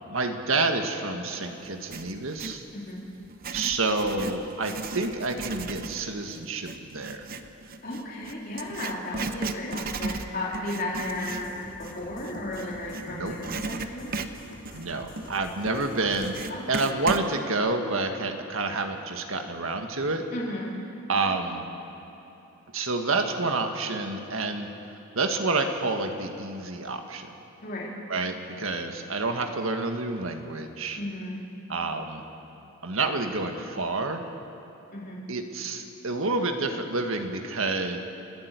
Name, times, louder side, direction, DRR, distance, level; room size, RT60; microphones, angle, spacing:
voice 1, 0.1-2.6 3.5-7.3 13.1-13.4 14.7-20.3 21.1-21.6 22.7-24.7 25.1-27.3 28.1-31.0 31.7-32.3 32.8-34.3 35.3-38.0, right 3 dB, 70° right, 5 dB, 1.7 m, -29 dB
Writing, 1.6-2.6 3.2-13.1 13.4-17.3, right 3 dB, 45° right, 0.8 m, -36 dB
voice 2, 2.7-3.1 7.8-11.5 11.8-14.1 16.5-16.9 20.3-20.7 27.6-27.9 31.0-31.4 34.9-35.2, left 1 dB, 45° left, -4 dB, 3.6 m, -34 dB
sound 1, 11.1-16.5, left 1 dB, 60° left, 2.6 m, -47 dB
30.0 x 10.5 x 8.3 m, 2.9 s
head